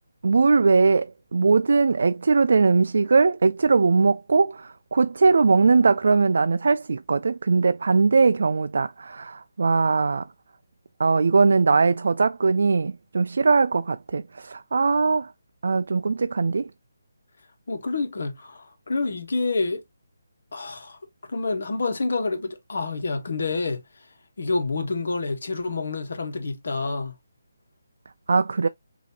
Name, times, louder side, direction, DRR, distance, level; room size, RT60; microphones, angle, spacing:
voice 1, 0.2-10.3 11.0-15.3 15.6-16.7 28.3-28.7, right 4 dB, 65° right, 0.3 m, -20 dB
voice 2, 17.7-19.8 20.5-21.0 21.3-23.8 24.4-27.1, left 3 dB, 70° left, 1.3 m, -28 dB
5.0 x 2.8 x 2.8 m
hypercardioid pair, 165°, 0 cm